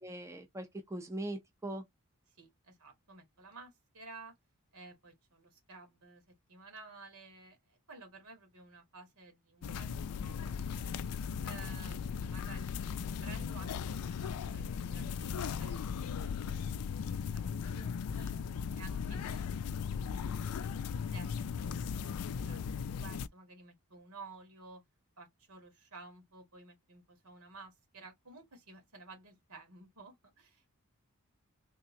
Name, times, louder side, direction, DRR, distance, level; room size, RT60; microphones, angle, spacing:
voice 1, 0.0-1.8, right 1 dB, 15° right, 0.6 m, -41 dB
voice 2, 2.4-4.3 4.7-10.9 11.4-18.3 18.7-19.5 20.1-24.8 25.2-30.8, right 3 dB, 75° right, 2.1 m, -54 dB
sound 1, 9.6-23.3, left 6 dB, 85° left, 0.4 m, -37 dB
3.6 x 3.1 x 2.8 m
head